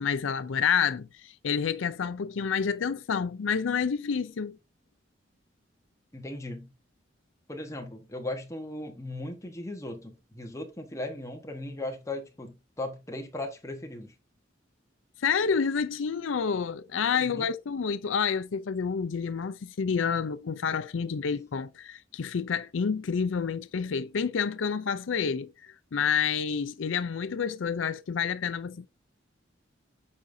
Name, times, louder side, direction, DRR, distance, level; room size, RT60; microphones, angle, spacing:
voice 1, 0.0-4.6 15.2-28.9, left 6 dB, 85° left, 0.5 m, -29 dB
voice 2, 6.1-6.7 7.5-14.1 17.1-17.5, left 1 dB, 15° left, 1.2 m, -37 dB
8.5 x 5.3 x 2.6 m
head